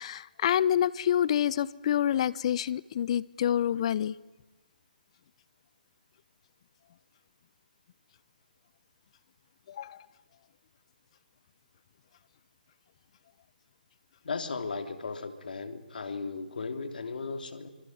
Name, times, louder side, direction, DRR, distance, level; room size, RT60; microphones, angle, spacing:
voice 1, 0.0-4.2 9.7-10.1, left 10 dB, 40° left, 20 dB, 0.9 m, -27 dB
voice 2, 14.2-17.7, left 4 dB, 65° left, 7 dB, 3.1 m, -36 dB
26.0 x 24.5 x 9.5 m, 1.1 s
hypercardioid pair, 155°, 5 cm